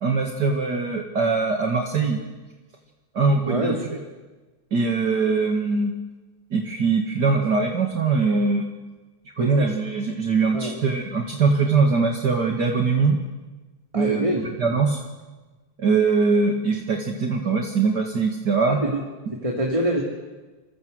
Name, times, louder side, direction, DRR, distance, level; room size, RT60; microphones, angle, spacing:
voice 1, 0.0-2.2 3.1-3.8 4.7-6.0 6.5-8.7 9.4-13.2 13.9-15.0 15.8-18.8, right 4 dB, 55° right, 2 dB, 2.5 m, -22 dB
voice 2, 3.4-4.0 9.4-9.6 10.5-10.8 13.9-14.4 18.7-19.0 19.3-20.0, right 1 dB, 15° right, 0 dB, 2.9 m, -25 dB
30.0 x 24.5 x 8.0 m, 1.2 s
omnidirectional pair, 2.2 m